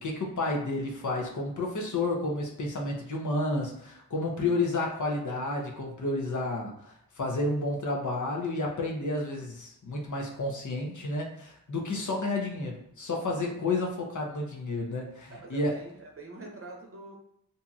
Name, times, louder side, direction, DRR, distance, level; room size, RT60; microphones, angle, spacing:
voice 1, 0.0-15.7, left 2 dB, 55° left, 0 dB, 0.7 m, -31 dB
voice 2, 15.3-17.1, right 3 dB, 40° right, -1 dB, 0.8 m, -44 dB
2.7 x 2.7 x 2.3 m, 0.73 s
wide cardioid pair, 80°, 36 cm